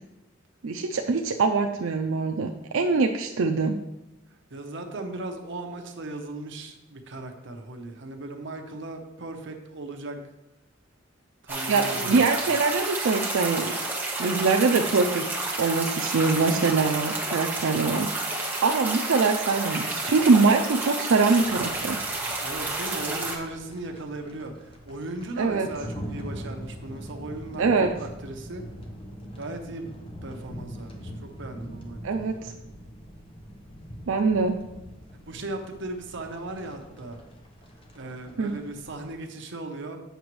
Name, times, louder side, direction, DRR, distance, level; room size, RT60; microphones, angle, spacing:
voice 1, 0.6-3.8 11.7-13.7 14.2-15.3 15.6-22.0 25.4-25.7 27.6-27.9 32.0-32.5 34.1-34.6 38.4-38.5, right 4 dB, 85° right, 4 dB, 0.4 m, -23 dB
voice 2, 4.5-10.2 11.4-12.6 22.4-28.6 29.4-29.9 30.2-32.5 35.3-37.2 37.9-40.0, right 2 dB, 65° right, 4 dB, 0.8 m, -37 dB
sound 1, 11.5-23.4, right 2 dB, 10° right, 1.2 m, -30 dB
sound 2, 21.3-39.1, equal, 30° left, 0.9 m, -43 dB
7.9 x 5.9 x 3.1 m, 0.95 s
head